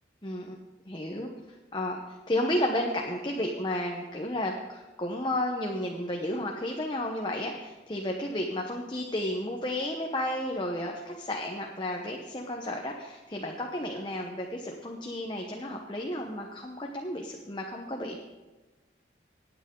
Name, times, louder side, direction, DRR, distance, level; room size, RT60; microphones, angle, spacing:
voice 1, 0.2-0.6 0.9-2.0 2.3-18.2, left 1 dB, 25° left, 1 dB, 0.9 m, -32 dB
19.0 x 9.1 x 3.8 m, 1.2 s
head